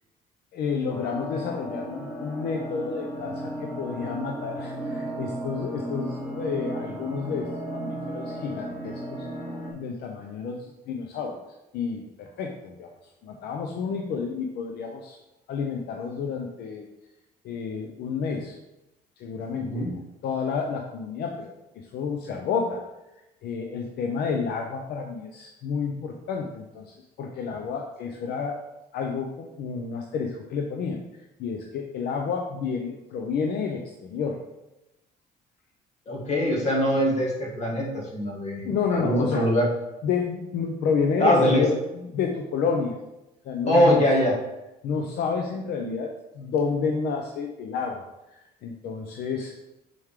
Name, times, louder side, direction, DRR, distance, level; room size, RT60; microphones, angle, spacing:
voice 1, 0.5-9.3 9.7-11.4 11.7-12.9 13.2-15.2 15.5-16.8 17.4-18.6 19.2-19.9 20.2-22.8 23.4-28.6 28.9-31.0 31.4-34.4 38.6-39.5 40.0-43.0 43.4-44.1 44.8-49.6, left 5 dB, 70° left, 2 dB, 0.7 m, -30 dB
sound 1, 0.9-9.7, right 1 dB, 10° left, 2.0 m, -34 dB
voice 2, 19.6-19.9 36.1-39.7 41.2-41.6 43.7-44.4, equal, 40° left, -2 dB, 2.1 m, -22 dB
6.1 x 4.7 x 3.7 m, 0.95 s
cardioid pair, 110°, 17 cm